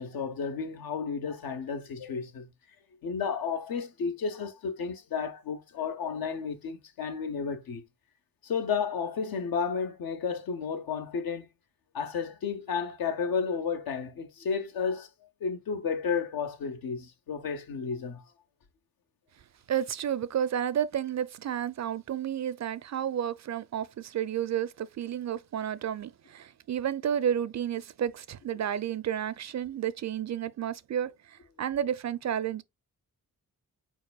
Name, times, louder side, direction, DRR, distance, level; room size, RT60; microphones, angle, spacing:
voice 1, 0.0-2.5 3.0-7.8 8.4-11.5 11.9-15.1 15.4-18.2, left 6 dB, 80° left, 0.9 m, -32 dB
voice 2, 19.7-32.6, right 9 dB, 50° right, 0.5 m, -31 dB
4.6 x 4.5 x 2.3 m
cardioid pair, 60°, 35 cm